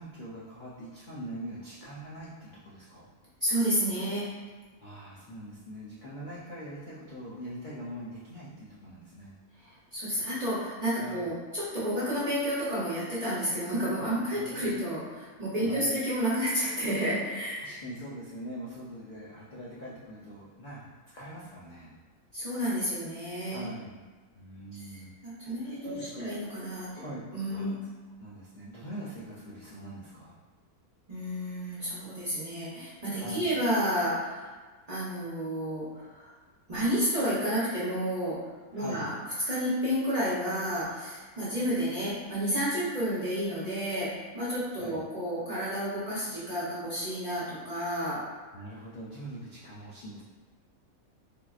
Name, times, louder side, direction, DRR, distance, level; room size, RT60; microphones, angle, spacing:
voice 1, 0.0-3.1 4.8-9.3 11.0-11.3 14.1-14.7 15.6-15.9 17.6-20.8 21.1-21.9 23.5-24.0 24.3-25.1 25.6-26.3 26.9-27.2 27.5-27.7 28.2-30.4 33.2-33.5 38.7-39.1 44.8-45.0 48.5-50.2, right 1 dB, 80° left, -8 dB, 0.4 m, -42 dB
voice 2, 3.4-4.3 9.9-17.7 22.3-23.7 24.9-26.9 27.3-27.8 31.1-34.5 34.9-36.3 36.7-38.4 38.7-39.1 39.4-48.2, equal, 40° right, -10 dB, 0.6 m, -31 dB
3.6 x 2.7 x 2.3 m, 1.4 s
omnidirectional pair, 1.6 m